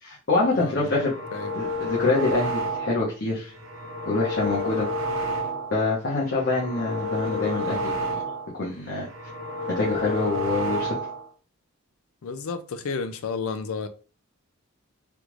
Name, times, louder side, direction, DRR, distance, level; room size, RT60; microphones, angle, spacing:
voice 1, 0.0-1.1 1.5-3.5 4.1-4.9 5.7-8.2 8.6-9.1 9.8-11.0, left 3 dB, 55° left, 0.9 m, -25 dB
voice 2, 0.6-1.0 1.3-1.5 12.2-13.9, left 5 dB, 80° left, 0.4 m, -31 dB
sound 1, 0.8-3.1 3.5-5.8 6.2-8.5 8.9-11.3, equal, 75° right, 1.0 m, -30 dB
3.5 x 2.4 x 3.0 m
head